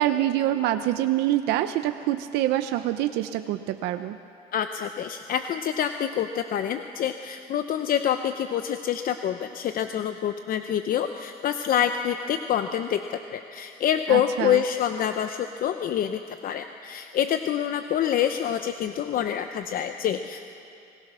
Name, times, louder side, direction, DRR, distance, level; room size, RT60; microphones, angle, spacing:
voice 1, 0.0-4.2 14.1-14.6, right 13 dB, 90° right, 9 dB, 0.7 m, -25 dB
voice 2, 4.5-20.5, left 9 dB, 60° left, 8 dB, 0.8 m, -27 dB
25.5 x 19.5 x 6.2 m, 2.6 s
cardioid pair, 110°, 17 cm